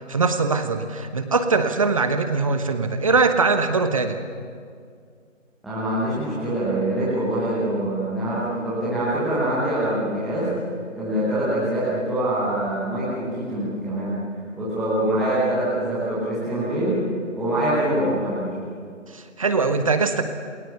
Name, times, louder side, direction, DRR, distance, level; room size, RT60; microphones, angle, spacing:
voice 1, 0.1-4.2 19.1-20.2, right 4 dB, 25° right, 8 dB, 1.1 m, -21 dB
voice 2, 5.6-10.5 10.9-14.2 14.5-17.0 17.3-18.5, right 1 dB, ahead, -11 dB, 0.9 m, -24 dB
28.0 x 21.5 x 7.0 m, 2.2 s
figure-of-eight pair, 150°, 39 cm